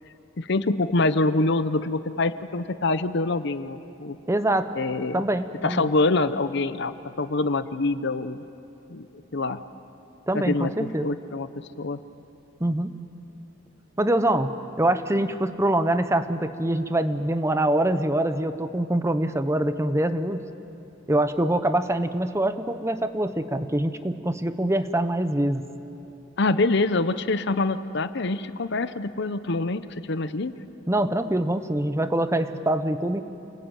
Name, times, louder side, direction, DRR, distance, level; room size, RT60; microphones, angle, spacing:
voice 1, 0.4-4.2 4.7-5.2 5.6-8.4 8.9-9.1 9.3-9.6 10.3-11.5 11.8-12.0 26.4-30.5, left 2 dB, 60° left, 13 dB, 0.8 m, -25 dB
voice 2, 4.3-4.7 5.1-5.9 10.3-11.1 12.6-12.9 14.0-20.4 21.1-25.6 30.9-33.2, right 1 dB, 15° right, 10 dB, 0.9 m, -24 dB
29.0 x 20.0 x 9.1 m, 2.9 s
head